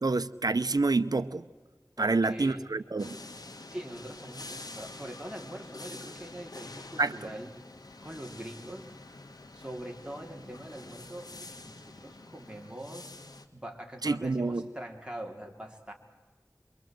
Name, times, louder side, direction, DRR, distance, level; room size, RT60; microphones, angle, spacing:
voice 1, 0.0-1.4 2.0-3.2 7.0-7.1 14.0-14.6, right 3 dB, 75° right, 0.8 m, -27 dB
voice 2, 2.0-2.7 3.7-7.5 8.0-8.9 9.5-13.1 13.5-15.9, right 1 dB, 15° right, 3.4 m, -43 dB
sound 1, 3.0-13.5, left 2 dB, 80° left, 1.6 m, -47 dB
27.0 x 23.5 x 7.7 m
wide cardioid pair, 50°, 7 cm